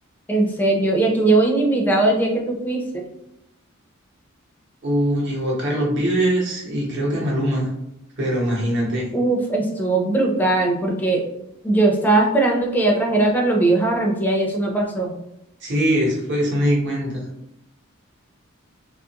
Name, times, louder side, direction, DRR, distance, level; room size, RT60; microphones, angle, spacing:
voice 1, 0.3-3.0 9.1-11.2 11.6-15.2, right 2 dB, 10° left, -1 dB, 0.5 m, -19 dB
voice 2, 4.8-7.7 8.2-9.1 15.6-17.3, equal, 55° right, -3 dB, 0.9 m, -22 dB
2.8 x 2.4 x 2.8 m, 0.84 s
head